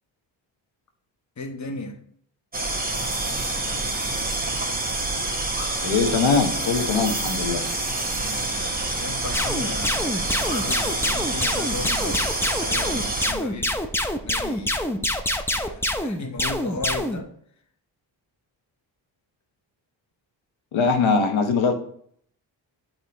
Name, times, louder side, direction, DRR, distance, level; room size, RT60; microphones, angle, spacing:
voice 1, 1.4-2.0 8.1-13.7 14.2-14.9 15.5-17.3, left 3 dB, 35° left, 1.2 m, -36 dB
sound 1, 2.5-13.3, right 2 dB, 20° right, 1.2 m, -27 dB
voice 2, 5.8-7.6 20.7-21.7, left 5 dB, 75° left, 1.1 m, -21 dB
sound 2, 9.3-17.2, left 1 dB, 5° left, 0.6 m, -26 dB
7.9 x 3.0 x 4.1 m
cardioid pair, 60°, 47 cm